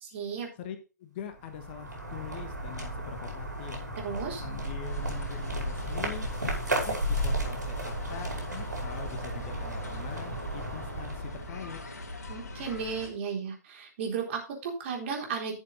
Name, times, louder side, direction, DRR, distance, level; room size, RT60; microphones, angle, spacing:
voice 1, 0.0-0.5 4.0-4.4 12.3-15.5, right 6 dB, 40° right, 0 dB, 4.0 m, -34 dB
voice 2, 0.6-3.8 4.4-6.3 6.8-11.8, left 9 dB, 35° left, 8 dB, 1.4 m, -43 dB
sound 1, 1.3-12.0, right 1 dB, 75° right, 5.3 m, -34 dB
sound 2, 4.9-13.1, left 2 dB, 65° left, 3.2 m, -41 dB
11.5 x 7.2 x 4.1 m, 0.32 s
figure-of-eight pair, 120°, 10 cm